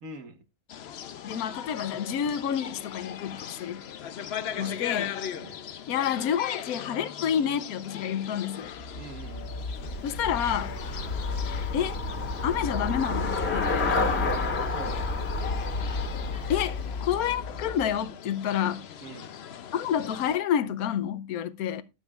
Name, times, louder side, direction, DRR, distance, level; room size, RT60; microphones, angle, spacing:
voice 1, 0.0-0.4 4.6-4.8 5.3-5.6 9.0-9.5 14.7-15.0 19.0-19.3, right 2 dB, 60° right, 1.6 m, -43 dB
sound 1, 0.7-20.4, left 9 dB, 60° left, 0.7 m, -40 dB
voice 2, 1.2-3.8 4.6-5.1 5.9-8.7 10.0-10.7 11.7-12.0 12.4-14.0 16.5-18.8 19.7-21.8, left 9 dB, 80° left, 1.1 m, -29 dB
Traffic noise roadway noise / Bicycle, 8.8-18.0, left 3 dB, 45° left, 1.9 m, -30 dB
13.5 x 7.4 x 2.4 m
omnidirectional pair, 1.6 m